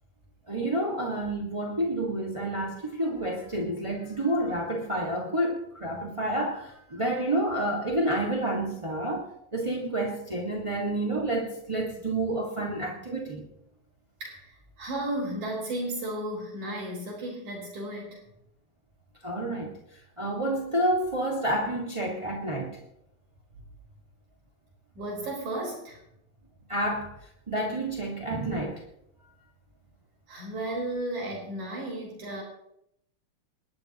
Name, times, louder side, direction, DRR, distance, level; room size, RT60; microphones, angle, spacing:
voice 1, 0.5-13.4 19.2-19.8 20.2-22.8 26.7-27.1 27.5-28.8, right 1 dB, 15° right, 1.1 m, -29 dB
voice 2, 14.2-18.2 25.0-26.0 30.3-32.4, right 1 dB, 75° right, 5.7 m, -34 dB
27.5 x 11.5 x 2.9 m
omnidirectional pair, 3.4 m